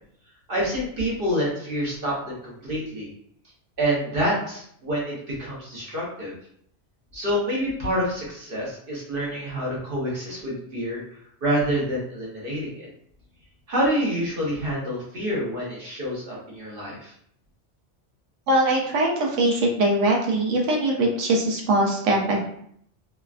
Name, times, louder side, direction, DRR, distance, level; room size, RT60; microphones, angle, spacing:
voice 1, 0.5-3.1 3.8-6.3 7.1-11.0 11.4-12.9 13.7-17.1, equal, 50° right, -5 dB, 1.0 m, -27 dB
voice 2, 18.5-22.5, right 1 dB, 85° right, -1 dB, 1.0 m, -22 dB
3.2 x 2.2 x 2.4 m, 0.67 s
omnidirectional pair, 1.2 m